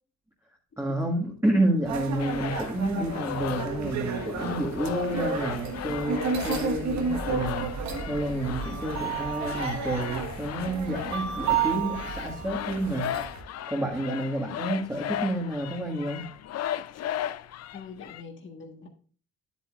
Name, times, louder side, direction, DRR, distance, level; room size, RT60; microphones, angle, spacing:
voice 1, 0.8-13.1 13.7-16.2, right 1 dB, 10° right, -2 dB, 1.6 m, -29 dB
sound 1, 1.8-13.4, right 5 dB, 65° right, 1.4 m, -32 dB
sound 2, 2.2-18.2, left 11 dB, 55° left, 0.5 m, -36 dB
voice 2, 17.7-18.9, left 5 dB, 40° left, 2 dB, 1.5 m, -43 dB
9.7 x 8.4 x 2.4 m, 0.41 s
cardioid pair, 90°, 30 cm